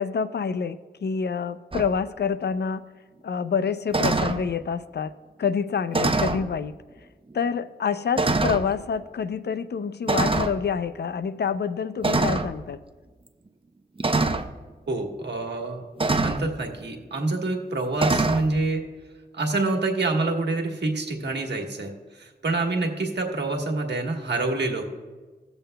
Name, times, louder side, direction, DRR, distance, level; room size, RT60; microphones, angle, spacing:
voice 1, 0.0-2.9 3.2-5.1 5.4-6.7 7.3-12.8, left 6 dB, 70° left, 13 dB, 0.4 m, -27 dB
sound 1, 1.7-1.9 3.9-4.4 5.9-6.5 7.3-7.4 8.2-8.7 10.1-10.6 12.0-12.5 14.0-14.5 16.0-16.5 18.0-18.5, right 3 dB, 30° right, 0.6 m, -23 dB
voice 2, 14.9-15.8 16.1-18.9 19.3-24.8, right 2 dB, 75° right, 2 dB, 1.3 m, -27 dB
18.0 x 6.9 x 2.2 m, 1.3 s
cardioid pair, 40°, 18 cm